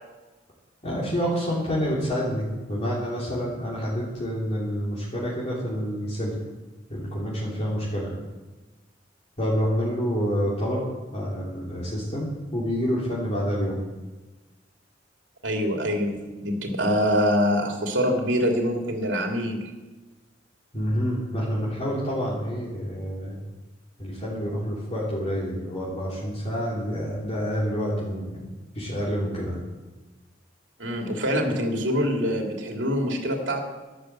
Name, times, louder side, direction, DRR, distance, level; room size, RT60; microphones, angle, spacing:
voice 1, 0.8-6.3 6.9-8.1 9.4-10.9 11.1-13.8 20.7-23.4 24.0-28.5 28.7-29.5, equal, 35° left, -6 dB, 3.4 m, -28 dB
voice 2, 15.4-19.7 30.8-33.6, equal, 85° right, 1 dB, 2.8 m, -25 dB
12.0 x 11.0 x 7.6 m, 1.2 s
head